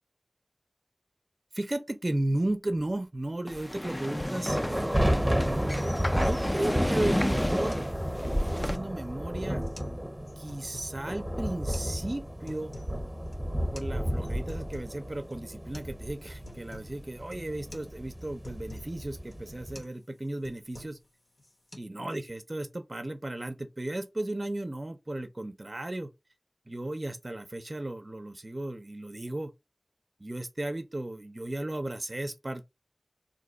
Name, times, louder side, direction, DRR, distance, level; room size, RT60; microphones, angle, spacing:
voice 1, 1.5-5.8 6.1-7.9 8.3-9.6 10.4-12.7 13.7-21.0 21.8-26.1 26.7-29.5 30.2-32.6, right 1 dB, 50° right, 0.4 m, -35 dB
sound 1, 3.5-8.8, left 1 dB, 20° left, 0.3 m, -32 dB
sound 2, 4.5-19.8, equal, 10° right, 0.7 m, -32 dB
sound 3, 7.7-7.9 8.3-9.0 9.6-10.0 10.3-10.9 11.7-11.9 12.3-13.0 13.3-13.4 13.8-13.9 14.2-15.0 15.3-15.4 15.7-16.0 16.2-16.9 17.3-17.5 17.7-17.9 18.2-18.9 19.3-19.5 19.7-20.0 20.3-21.1 21.4-21.8, left 1 dB, 75° left, 0.9 m, -48 dB
2.6 x 2.2 x 3.8 m
wide cardioid pair, 45°, 0 cm